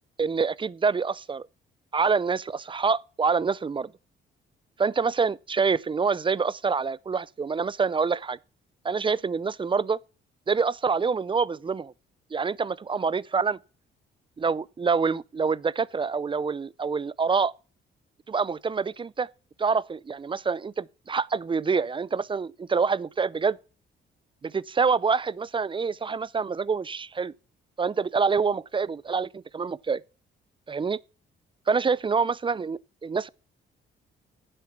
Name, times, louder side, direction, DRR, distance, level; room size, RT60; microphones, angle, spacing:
voice 1, 0.2-1.5 1.9-3.9 4.8-8.4 8.8-10.0 10.5-11.9 12.3-13.6 14.4-17.5 18.3-19.3 19.6-23.6 24.4-27.3 27.8-30.0 30.7-31.0 31.7-33.3, right 5 dB, 25° right, 0.5 m, -26 dB
9.8 x 7.7 x 5.9 m
cardioid pair, 90°, 20 cm